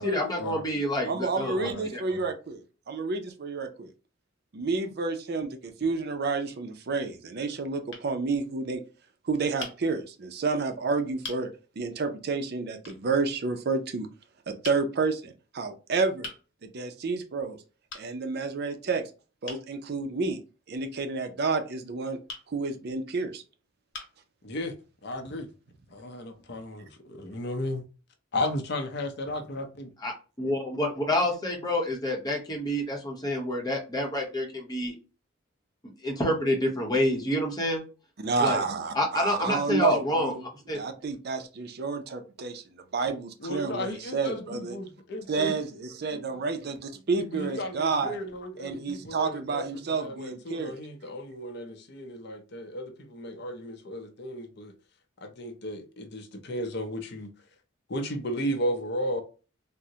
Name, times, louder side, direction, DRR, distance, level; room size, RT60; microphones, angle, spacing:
voice 1, 0.0-1.6 1.9-2.0 30.0-30.1 30.4-35.0 36.0-37.8 38.4-38.6 38.9-40.3 40.7-40.8, left 1 dB, 20° left, 0.8 m, -28 dB
voice 2, 1.0-3.9 4.5-8.8 9.2-11.5 11.8-14.1 14.5-16.3 16.6-17.6 17.9-19.1 19.4-20.4 20.7-22.2 22.5-23.4 38.2-40.4 40.7-42.6 42.9-44.8 45.3-48.2 48.6-50.7, right 4 dB, 55° right, 0.5 m, -30 dB
voice 3, 1.6-2.2 24.4-24.7 25.0-25.5 25.9-27.8 28.3-29.9 43.4-45.6 47.2-54.7 55.2-57.3 57.9-59.2, left 1 dB, 55° left, 0.6 m, -34 dB
sound 1, 6.1-6.7 7.5-7.6 7.9-8.1 9.6-9.8 10.6-10.7 11.2-11.5 12.8-13.0 14.6-14.9 16.2-16.4 17.9-18.1 19.5-19.7 22.3-22.5 23.3-23.4 23.9-24.2, left 3 dB, 75° left, 1.1 m, -40 dB
3.6 x 2.1 x 2.7 m
head